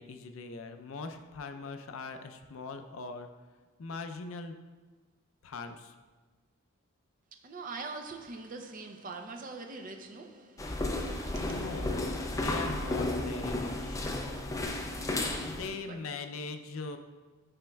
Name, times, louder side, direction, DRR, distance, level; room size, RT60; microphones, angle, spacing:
voice 1, 0.0-3.3 3.8-4.6 5.4-5.9 11.4-14.0 15.4-17.0, left 4 dB, 70° left, 0.5 m, -41 dB
voice 2, 7.3-11.6 15.9-16.0, right 3 dB, 40° right, 0.5 m, -43 dB
sound 1, 10.6-15.7, left 2 dB, 15° left, 0.4 m, -33 dB
8.8 x 5.1 x 2.3 m
head